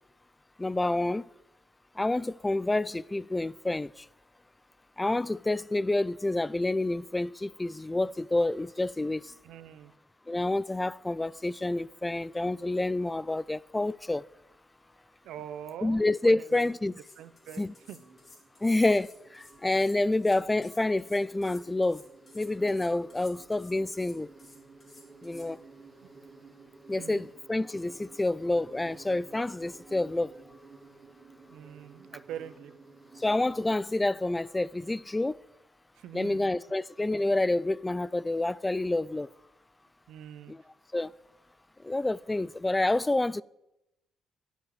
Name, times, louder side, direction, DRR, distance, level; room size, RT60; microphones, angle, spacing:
voice 1, 0.6-1.3 2.0-4.1 5.0-9.3 10.3-14.2 15.8-16.9 17.6-17.7 18.6-22.0 22.3-24.3 25.2-25.6 26.9-30.3 33.2-35.4 36.1-39.3 40.5-40.6 40.9-41.1 41.8-43.4, left 2 dB, 15° left, 0.3 m, -28 dB
voice 2, 9.4-9.9 15.2-16.6 17.2-17.6 17.9-18.0 27.0-27.3 31.5-32.7 36.0-36.5 40.1-40.5, right 10 dB, 85° right, 0.8 m, -43 dB
sound 1, 16.5-25.5, left 3 dB, 40° left, 3.7 m, -55 dB
Insect, 17.2-33.9, right 4 dB, 35° right, 2.2 m, -54 dB
10.5 x 7.3 x 9.1 m
cardioid pair, 90°, 0 cm